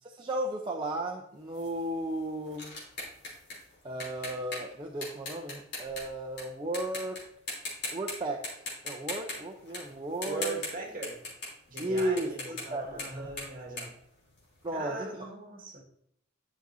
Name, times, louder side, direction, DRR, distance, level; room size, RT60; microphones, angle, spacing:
voice 1, 0.0-2.8 3.8-7.2 7.9-8.5 8.8-10.6 11.8-13.3 14.6-15.3, right 1 dB, 25° right, 1 dB, 0.6 m, -34 dB
sound 1, 1.5-6.4 6.7-7.2 7.5-8.1 8.4-14.8, left 2 dB, 55° left, 3.2 m, -40 dB
voice 2, 10.2-11.2 11.7-14.0 14.7-15.8, right 3 dB, 45° right, 0 dB, 1.7 m, -39 dB
11.0 x 6.1 x 2.6 m, 0.74 s
head